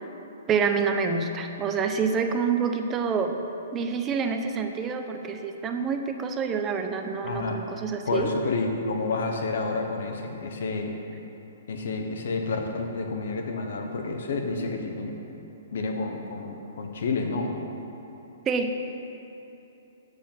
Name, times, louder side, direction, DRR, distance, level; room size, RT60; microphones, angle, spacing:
voice 1, 0.5-3.4 3.7-8.3 18.5-18.7, right 5 dB, 20° right, 6 dB, 0.6 m, -27 dB
voice 2, 7.2-7.6 8.1-11.0 11.7-15.2 15.7-17.6, left 3 dB, 70° left, 3 dB, 1.0 m, -29 dB
8.2 x 6.4 x 5.9 m, 3.0 s
hypercardioid pair, 135°, 0 cm